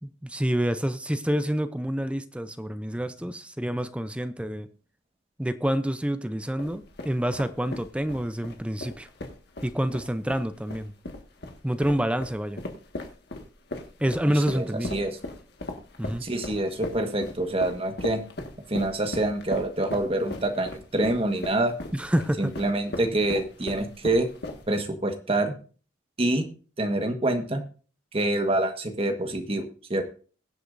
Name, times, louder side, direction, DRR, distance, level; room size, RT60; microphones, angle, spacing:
voice 1, 0.0-4.7 5.4-9.1 9.6-10.9 11.6-12.6 14.0-14.9 16.0-16.2 21.9-22.5, equal, 5° right, 0.5 m, -27 dB
sound 1, 6.6-24.9, left 1 dB, 55° left, 1.7 m, -38 dB
voice 2, 14.3-15.2 16.2-18.2 18.7-21.7 22.4-24.3 24.7-25.5 26.2-26.5 26.8-27.6 28.1-30.0, right 1 dB, 30° right, 1.4 m, -26 dB
21.5 x 8.2 x 2.6 m
head